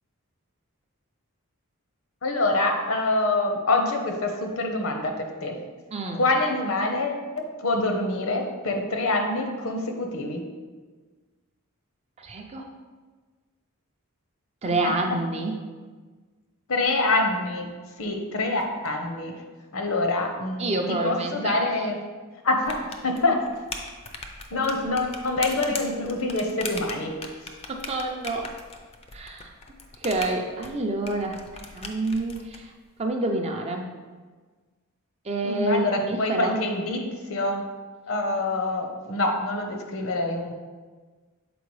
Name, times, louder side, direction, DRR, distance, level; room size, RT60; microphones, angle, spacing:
voice 1, 2.2-5.6 6.1-7.2 7.6-10.4 14.8-14.9 16.7-17.7 18.0-19.3 19.7-22.0 22.4-23.4 24.5-27.1 35.4-37.0 37.3-37.6 38.1-40.5, left 2 dB, 65° left, 3 dB, 0.8 m, -25 dB
voice 2, 12.2-12.7 14.6-15.6 20.6-21.5 27.7-28.5 29.1-29.5 30.0-32.7 33.0-33.9 35.2-36.6, right 2 dB, 30° right, 3 dB, 0.5 m, -28 dB
sound 1, 22.6-32.6, left 3 dB, 30° left, 0.5 m, -39 dB
6.9 x 4.5 x 3.2 m, 1.4 s
head